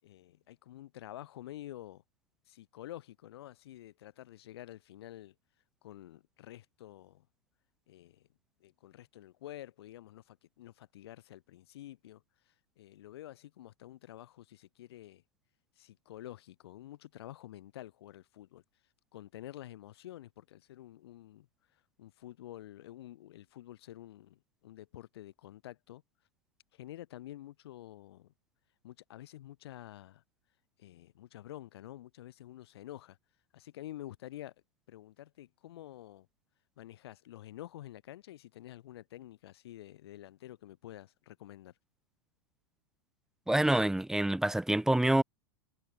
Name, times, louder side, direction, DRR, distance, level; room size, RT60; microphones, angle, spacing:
voice 1, 0.0-2.0 2.5-5.4 5.8-7.3 7.9-8.3 8.6-15.2 15.8-18.6 19.1-26.0 26.7-28.3 28.8-30.2 30.8-33.2 33.5-34.5 34.9-36.3 36.8-41.7, left 13 dB, 70° left, 7.4 m, -49 dB
voice 2, 43.5-45.2, right 1 dB, 5° right, 0.6 m, -26 dB
hypercardioid pair, 110°, 14 cm